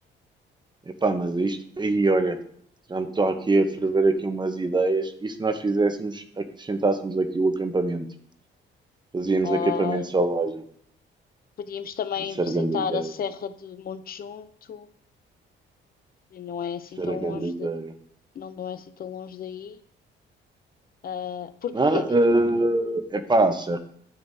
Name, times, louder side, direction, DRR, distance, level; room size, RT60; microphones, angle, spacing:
voice 1, 1.0-2.4 2.9-8.1 9.1-10.6 12.4-13.1 17.0-17.9 21.7-23.8, right 2 dB, 20° right, 8 dB, 0.9 m, -24 dB
voice 2, 9.4-10.1 11.7-14.9 16.3-17.7 18.4-19.8 21.0-22.0, left 8 dB, 50° left, 12 dB, 0.6 m, -33 dB
9.6 x 6.7 x 2.7 m, 0.62 s
cardioid pair, 90°, 20 cm